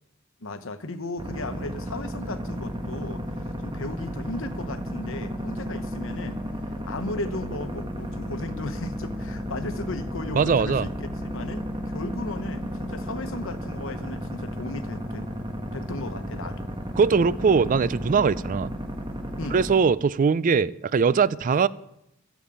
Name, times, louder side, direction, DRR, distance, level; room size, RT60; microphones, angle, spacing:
voice 1, 0.4-3.2 3.6-6.4 6.8-15.3 15.7-16.7 19.4-19.6, left 2 dB, 70° left, 10 dB, 1.1 m, -36 dB
sound 1, 1.2-19.8, equal, 25° right, 1.3 m, -33 dB
voice 2, 10.3-10.9 17.0-18.7 19.5-21.7, right 5 dB, 40° right, 19 dB, 0.4 m, -21 dB
12.5 x 7.3 x 8.9 m, 0.81 s
head